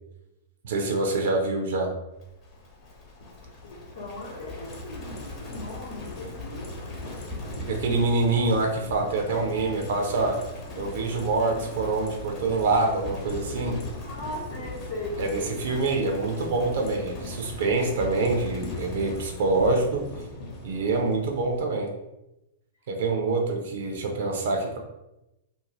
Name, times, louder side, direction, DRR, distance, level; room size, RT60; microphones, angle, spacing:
voice 1, 0.6-1.9 7.7-10.4 10.7-13.8 15.2-20.1 20.6-21.9 22.9-24.8, right 3 dB, 55° right, 2 dB, 0.4 m, -25 dB
Livestock farm animals working animals, 2.2-21.9, left 2 dB, 35° left, 0.7 m, -38 dB
voice 2, 3.6-6.7 7.9-8.2 9.3-9.8 13.5-13.6 14.0-15.5 23.1-23.4, left 1 dB, 65° left, -6 dB, 0.8 m, -38 dB
2.5 x 2.1 x 3.0 m, 0.94 s
figure-of-eight pair, 100°, 0 cm